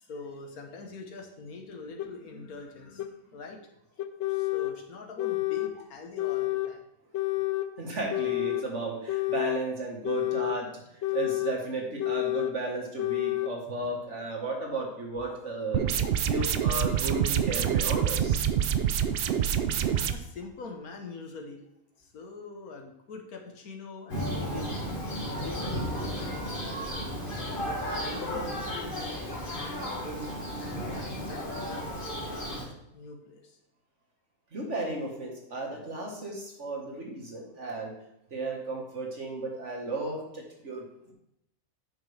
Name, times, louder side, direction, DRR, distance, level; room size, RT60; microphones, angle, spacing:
voice 1, 0.0-3.6 3.9-6.8 11.3-11.4 12.3-12.5 15.9-16.1 19.5-19.7 19.9-21.7 22.0-24.9 25.3-26.8 27.3-33.6, left 3 dB, 80° left, 3 dB, 1.6 m, -45 dB
sound 1, 2.0-2.1 3.0-3.1 4.0-4.8 5.2-5.7 6.2-6.7 7.1-7.7 8.1-8.7 9.1-9.6 10.0-10.6 11.0-11.6 12.0-12.6 13.0-13.5, left 19 dB, 65° left, 0.8 m, -29 dB
voice 2, 7.8-10.8 11.1-15.9 16.3-18.4 34.5-38.0 38.3-41.1, right 2 dB, 55° right, 0 dB, 1.9 m, -34 dB
sound 2, 15.7-20.1, right 9 dB, 70° right, 0.5 m, -26 dB
Thunder, 24.1-32.6, equal, 40° left, 2.0 m, -34 dB
9.3 x 5.9 x 3.4 m, 0.80 s
omnidirectional pair, 1.5 m